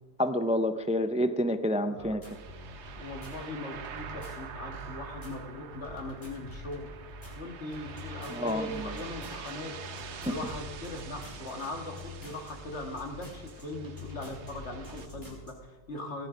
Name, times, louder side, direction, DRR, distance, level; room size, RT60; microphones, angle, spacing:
voice 1, 0.2-2.2 8.3-8.9 10.3-10.4, left 1 dB, 10° right, 10 dB, 0.3 m, -28 dB
voice 2, 1.8-2.2 2.6-6.9 7.3-16.3, left 2 dB, 85° left, 3 dB, 2.1 m, -40 dB
sound 1, 2.0-15.5, left 1 dB, 35° left, 4.4 m, -46 dB
sound 2, 2.2-15.1, right 7 dB, 90° right, 1.1 m, -46 dB
17.0 x 10.0 x 5.1 m, 1.4 s
omnidirectional pair, 1.1 m